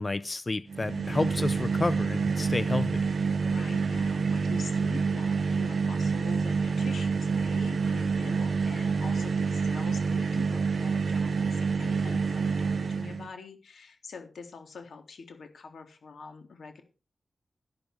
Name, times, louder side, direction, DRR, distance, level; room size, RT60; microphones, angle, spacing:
voice 1, 0.0-3.1, left 2 dB, 30° left, 0.6 m, -30 dB
sound 1, 0.7-13.3, right 5 dB, 60° right, 0.6 m, -28 dB
voice 2, 0.9-1.2 3.3-16.8, left 4 dB, 85° left, 3.5 m, -44 dB
12.0 x 12.0 x 4.8 m
wide cardioid pair, 110°, 0 cm